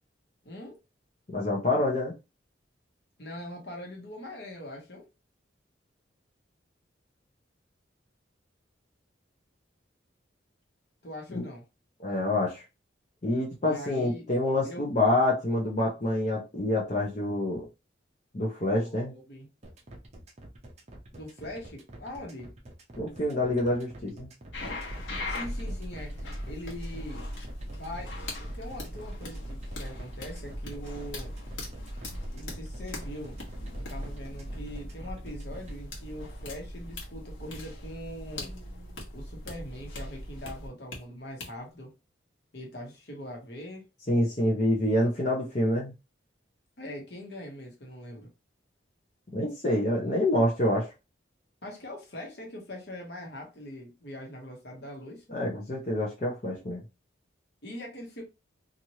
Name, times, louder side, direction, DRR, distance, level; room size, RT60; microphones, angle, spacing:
voice 1, 0.4-0.8 3.2-5.1 11.0-11.6 13.6-14.2 14.6-15.0 18.7-19.5 21.1-22.5 25.3-27.3 27.7-31.3 32.3-33.4 33.7-38.5 39.1-41.9 42.5-43.9 46.8-48.3 51.6-55.2 57.6-58.2, left 1 dB, 60° left, 1.2 m, -42 dB
voice 2, 1.3-2.1 11.3-11.5 12.0-12.6 13.2-17.7 18.3-19.1 23.0-24.3 44.1-45.9 49.3-50.9 55.3-56.8, left 1 dB, 35° left, 0.7 m, -27 dB
sound 1, 19.6-35.7, right 1 dB, 35° right, 0.7 m, -48 dB
sound 2, 24.5-41.0 41.4-41.5, left 1 dB, 80° left, 1.2 m, -39 dB
3.0 x 2.6 x 2.8 m
head